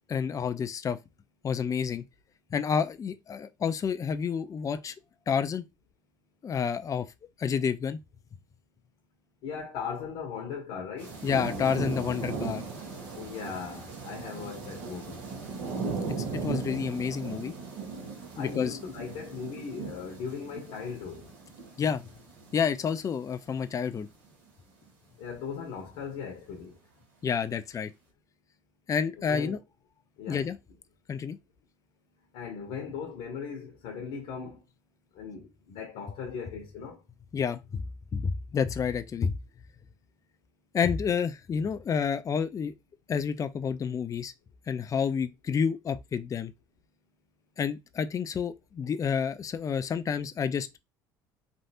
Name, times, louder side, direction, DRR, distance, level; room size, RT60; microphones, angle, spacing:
voice 1, 0.1-1.0 1.4-2.0 2.5-4.9 5.3-5.6 6.4-7.1 7.4-8.0 11.2-12.6 16.3-17.5 18.4-18.8 21.8-22.1 22.5-24.1 27.2-27.9 28.9-29.6 30.3-30.6 31.1-31.4 37.3-37.9 38.1-39.4 40.7-42.7 43.1-44.3 44.7-46.5 47.6-50.8, left 6 dB, 30° left, 0.4 m, -29 dB
voice 2, 9.4-11.2 13.1-15.2 18.4-21.3 25.2-26.8 29.2-29.6 30.2-30.5 32.3-34.6 35.1-37.0, left 6 dB, 70° left, 0.9 m, -38 dB
sound 1, 11.0-23.9 24.3-24.4, right 4 dB, 75° right, 1.4 m, -38 dB
3.2 x 2.6 x 2.7 m
hypercardioid pair, 70°, 11 cm